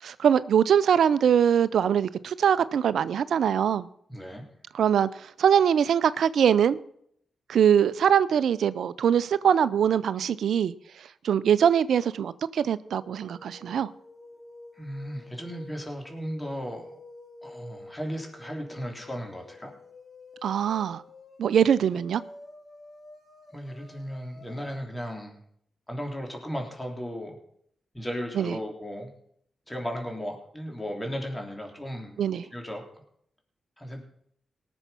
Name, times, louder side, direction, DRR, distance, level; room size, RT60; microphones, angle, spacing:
voice 1, 0.0-3.9 4.7-6.8 7.5-10.7 11.0-13.9 20.4-21.0 21.4-22.2 28.4-28.5 32.2-32.5, right 8 dB, 80° right, 0.5 m, -23 dB
voice 2, 4.1-4.4 14.7-17.0 17.4-19.7 23.5-25.4 25.9-27.4 27.9-29.1 29.7-32.2 32.5-32.8 33.8-34.0, equal, 15° left, 3.4 m, -35 dB
sound 1, 12.8-24.8, left 2 dB, 45° left, 3.8 m, -49 dB
18.5 x 7.1 x 5.7 m
supercardioid pair, 50°, 0 cm